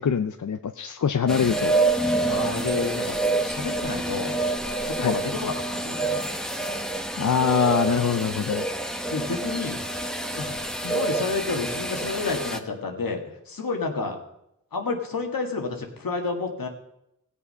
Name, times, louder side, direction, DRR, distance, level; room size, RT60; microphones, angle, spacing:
voice 1, 0.0-1.7 5.0-5.1 7.2-8.6, left 7 dB, 60° left, 8 dB, 0.6 m, -24 dB
sound 1, 1.3-12.6, right 2 dB, ahead, 1.2 m, -27 dB
voice 2, 2.3-4.4 4.8-6.3 9.1-9.8 10.4-10.5 10.8-14.2 14.7-16.7, left 4 dB, 80° left, 3 dB, 1.8 m, -30 dB
16.5 x 7.0 x 5.6 m, 0.82 s
cardioid pair, 45°, 34 cm